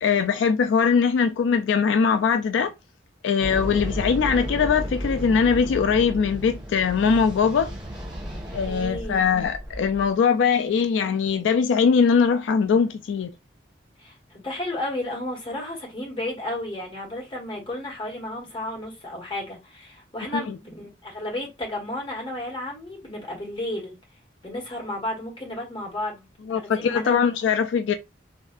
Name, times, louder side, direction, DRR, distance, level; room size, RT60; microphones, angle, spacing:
voice 1, 0.0-2.7 3.2-7.7 8.5-13.3 20.3-20.6 26.5-27.9, left 6 dB, 85° left, 0.3 m, -21 dB
sound 1, 3.4-10.1, equal, 25° right, 1.0 m, -33 dB
voice 2, 8.7-9.2 14.0-23.9 24.4-27.1, left 1 dB, 25° left, 1.2 m, -33 dB
3.1 x 2.7 x 2.3 m
head